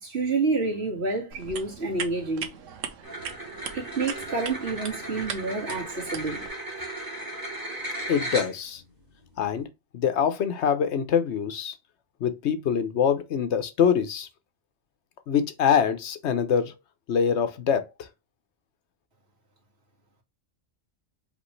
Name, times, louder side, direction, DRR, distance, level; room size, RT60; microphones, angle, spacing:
voice 1, 0.0-2.5 3.7-6.5, right 3 dB, 50° right, 2.1 m, -28 dB
sound 1, 1.3-6.5, right 7 dB, 70° right, 1.2 m, -39 dB
sound 2, 3.0-8.8, right 1 dB, 15° right, 1.8 m, -36 dB
voice 2, 8.1-8.8 9.4-9.7 9.9-11.7 12.2-14.3 15.3-16.7 17.1-18.1, left 7 dB, 60° left, 1.1 m, -24 dB
5.3 x 3.1 x 3.2 m
omnidirectional pair, 1.4 m